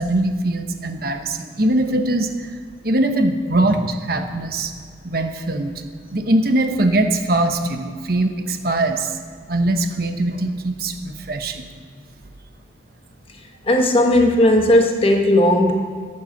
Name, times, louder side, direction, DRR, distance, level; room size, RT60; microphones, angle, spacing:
voice 1, 0.0-2.6 2.8-4.7 5.0-5.7 6.1-9.2 9.5-11.6, right 1 dB, 50° right, 6 dB, 1.0 m, -21 dB
voice 2, 13.7-15.7, left 1 dB, 30° left, 3 dB, 1.2 m, -15 dB
14.0 x 8.7 x 6.6 m, 2.1 s
head